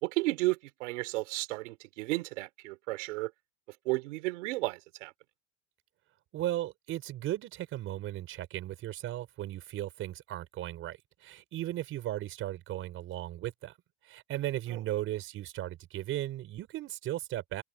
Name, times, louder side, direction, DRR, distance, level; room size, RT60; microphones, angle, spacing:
voice 1, 0.0-3.3 3.9-5.1 14.7-14.8, right 21 dB, 85° right, 4.0 m, -33 dB
voice 2, 6.3-13.8 14.0-17.6, right 14 dB, 35° right, 5.2 m, -36 dB
cardioid pair, 165°, 36 cm